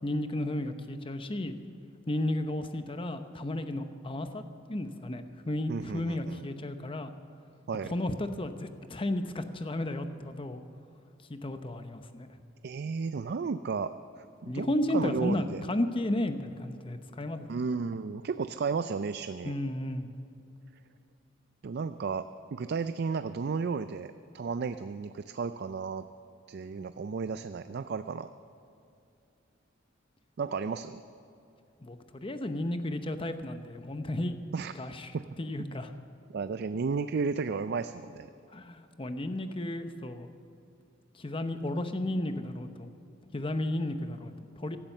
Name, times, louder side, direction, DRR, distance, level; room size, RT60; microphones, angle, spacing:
voice 1, 0.0-1.6 2.1-4.4 4.7-7.1 7.8-10.6 11.3-12.3 14.4-17.5 19.4-20.1 31.8-34.4 34.7-35.1 35.4-35.9 38.5-40.3 41.1-42.9 43.3-44.8, left 1 dB, 25° left, 9 dB, 0.8 m, -33 dB
voice 2, 5.7-6.5 7.7-7.9 12.6-14.7 14.9-15.6 17.5-19.5 21.6-26.1 26.5-28.3 30.4-31.0 34.5-34.7 35.1-35.2 36.3-38.3, right 5 dB, 55° right, 11 dB, 0.4 m, -33 dB
16.0 x 12.0 x 6.7 m, 2.7 s
head